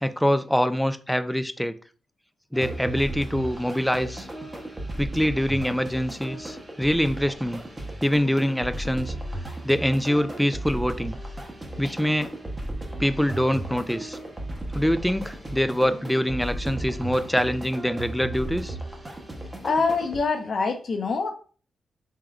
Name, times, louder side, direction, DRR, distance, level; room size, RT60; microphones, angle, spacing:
voice 1, 0.0-1.8 2.5-4.3 5.0-7.6 8.0-9.1 9.6-11.2 11.8-12.3 13.0-14.2 14.7-18.8, equal, ahead, 0.3 m, -24 dB
sound 1, 2.5-20.2, right 1 dB, 20° right, 0.8 m, -35 dB
voice 2, 19.6-21.3, left 4 dB, 55° left, 0.7 m, -25 dB
3.6 x 3.3 x 2.3 m
cardioid pair, 80°, 0 cm